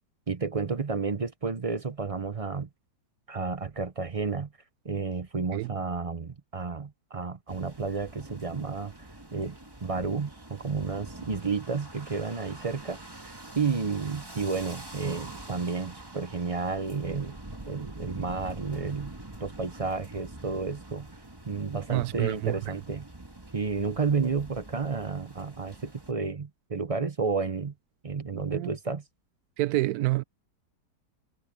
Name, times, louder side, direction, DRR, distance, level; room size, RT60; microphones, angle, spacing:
voice 1, 0.3-2.7 3.3-4.5 4.8-17.4 17.7-19.1 19.4-21.1 21.5-23.1 23.5-27.7 28.0-29.0, right 4 dB, 35° right, 0.5 m, -31 dB
sound 1, 7.5-26.1, right 2 dB, 15° right, 1.7 m, -45 dB
voice 2, 21.9-22.6 28.3-28.7 29.6-30.2, right 17 dB, 70° right, 1.0 m, -28 dB
omnidirectional pair, 1.8 m